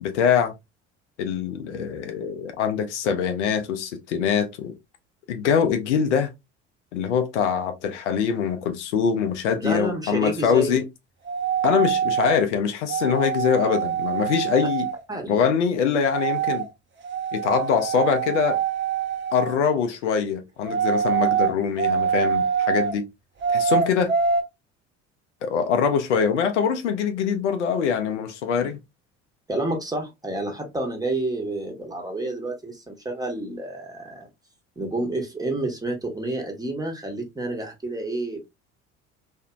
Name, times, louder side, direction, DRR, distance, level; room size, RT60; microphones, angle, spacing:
voice 1, 0.0-0.5 1.2-4.7 5.3-6.3 6.9-10.9 11.6-14.9 15.3-16.7 17.3-18.6 19.3-23.1 23.5-24.1 25.4-28.8, left 7 dB, 85° left, 0.6 m, -23 dB
voice 2, 9.6-10.8 14.6-14.7 15.1-15.5 29.5-34.3 34.8-38.5, right 2 dB, 10° right, 1.1 m, -29 dB
sound 1, 11.3-12.4 12.9-15.0 16.1-16.7 17.0-19.6 20.6-23.0 23.4-24.4, right 7 dB, 35° right, 0.8 m, -24 dB
2.8 x 2.5 x 2.2 m
hypercardioid pair, 65°, 35 cm